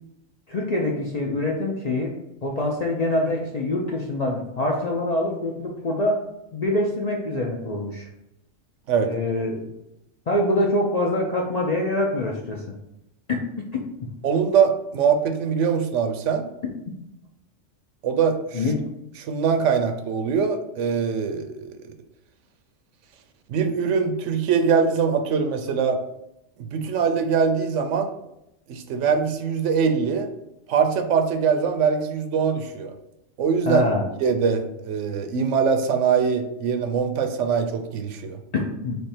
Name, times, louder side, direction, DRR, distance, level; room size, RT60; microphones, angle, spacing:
voice 1, 0.5-2.2 2.4-6.2 6.5-8.1 9.0-9.7 10.3-12.7 13.3-13.4 13.7-13.8 18.5-18.8 33.7-34.1 38.5-39.0, left 1 dB, 55° left, -2 dB, 0.4 m, -25 dB
voice 2, 14.2-16.5 18.0-18.7 19.2-21.9 23.5-26.0 26.6-28.1 28.7-30.3 30.7-32.9 33.4-33.8 34.2-38.4, right 6 dB, 75° right, 7 dB, 0.9 m, -22 dB
3.4 x 3.4 x 4.2 m, 0.84 s
omnidirectional pair, 1.3 m